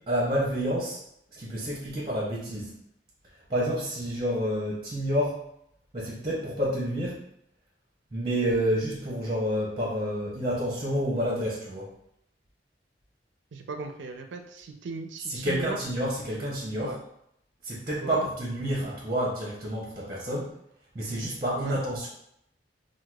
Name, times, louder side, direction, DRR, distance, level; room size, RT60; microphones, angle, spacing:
voice 1, 0.1-1.0 1.3-2.7 3.5-5.4 5.9-7.2 8.1-11.9 15.3-17.0 17.6-20.5 20.9-22.1, equal, 25° right, -5 dB, 0.8 m, -29 dB
voice 2, 13.5-15.8 16.8-17.0 18.0-18.3 21.6-21.8, right 4 dB, 90° right, 5 dB, 0.4 m, -37 dB
4.6 x 2.1 x 2.3 m, 0.76 s
head